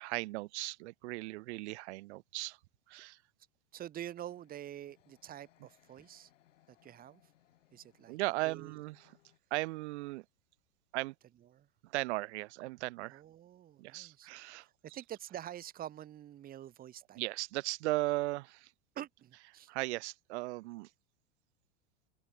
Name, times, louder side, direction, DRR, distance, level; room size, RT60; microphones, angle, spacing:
voice 1, 0.0-2.6 2.9-3.2 8.1-9.0 9.5-10.2 10.9-11.1 11.8-13.2 13.8-14.7 17.2-18.7 19.7-20.9, right 21 dB, 60° right, 0.8 m, -37 dB
voice 2, 3.7-6.3 6.7-7.2 7.7-8.2 8.4-8.8 11.5-11.7 13.1-14.3 14.6-17.2 18.9-19.7, right 11 dB, 25° right, 1.0 m, -47 dB
sound 1, 4.3-9.4, left 13 dB, 75° left, 3.8 m, -69 dB
hypercardioid pair, 120°, 38 cm